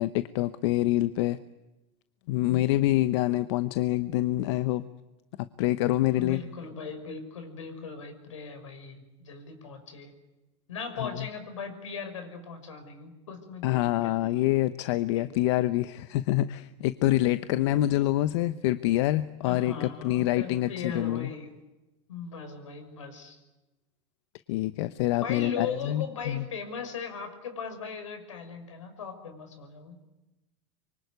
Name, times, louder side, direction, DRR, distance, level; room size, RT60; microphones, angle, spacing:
voice 1, 0.0-1.4 2.3-4.8 5.6-6.4 11.0-11.1 13.6-21.3 24.5-26.4, left 15 dB, 70° left, 13 dB, 1.0 m, -26 dB
voice 2, 6.1-10.1 10.7-14.5 15.1-15.3 19.4-21.5 22.1-23.4 25.2-30.0, left 5 dB, 90° left, 8 dB, 6.0 m, -39 dB
25.0 x 24.5 x 9.6 m, 1.1 s
hypercardioid pair, 95°, 16 cm